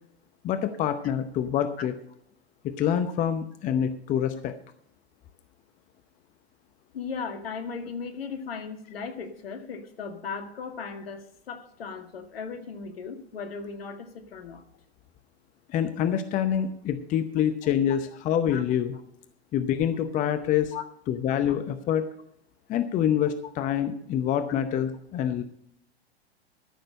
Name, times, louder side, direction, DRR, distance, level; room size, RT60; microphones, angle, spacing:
voice 1, 0.4-1.9 2.6-4.5 15.7-18.9 19.5-20.7 21.1-22.1 22.7-25.4, left 9 dB, 25° left, 10 dB, 0.8 m, -26 dB
voice 2, 6.9-14.6 17.6-17.7 18.5-18.6 20.7-20.8, left 5 dB, 65° left, 7 dB, 2.0 m, -37 dB
14.0 x 6.5 x 6.4 m, 0.69 s
figure-of-eight pair, 105°, 32 cm